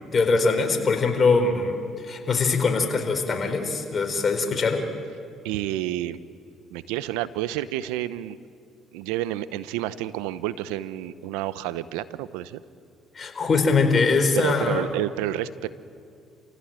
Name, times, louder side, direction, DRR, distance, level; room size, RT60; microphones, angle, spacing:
voice 1, 0.1-4.8 13.1-14.8, left 4 dB, 40° left, 4 dB, 4.3 m, -22 dB
voice 2, 5.4-6.2 6.7-8.4 8.9-12.6 14.3-15.7, right 13 dB, 85° right, 15 dB, 0.8 m, -29 dB
28.0 x 16.5 x 9.0 m, 2.4 s
supercardioid pair, 70°, 0 cm